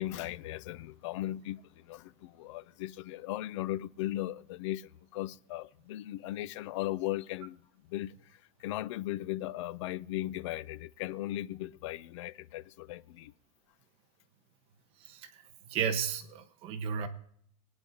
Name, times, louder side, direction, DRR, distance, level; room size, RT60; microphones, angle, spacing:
voice 1, 0.0-7.6 7.9-13.3, left 15 dB, 50° left, 0.4 m, -37 dB
voice 2, 15.0-15.4 15.7-17.1, right 7 dB, 30° right, 1.1 m, -33 dB
21.0 x 9.8 x 2.8 m
supercardioid pair, 170°, 19 cm